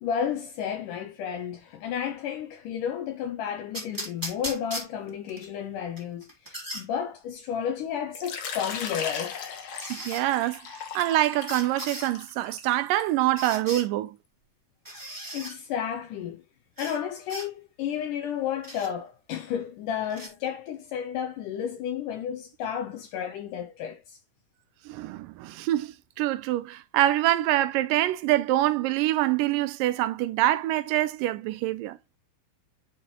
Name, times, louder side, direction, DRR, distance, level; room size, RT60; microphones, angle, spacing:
voice 1, 0.0-9.4 15.3-16.4 16.8-24.2, left 8 dB, 75° left, 2.2 m, -32 dB
sound 1, 3.7-5.5 6.0-6.9 8.4-8.5 9.8-10.2 11.5-12.1 13.4-13.9 14.8-15.6 16.8-17.0 17.3-17.5 18.6-18.9 20.1-20.3, right 1 dB, 5° right, 1.8 m, -37 dB
Water / Liquid, 8.1-13.7, left 6 dB, 55° left, 1.9 m, -38 dB
voice 2, 9.9-14.2 24.9-32.0, right 15 dB, 80° right, 2.1 m, -25 dB
9.9 x 4.6 x 3.0 m
omnidirectional pair, 4.1 m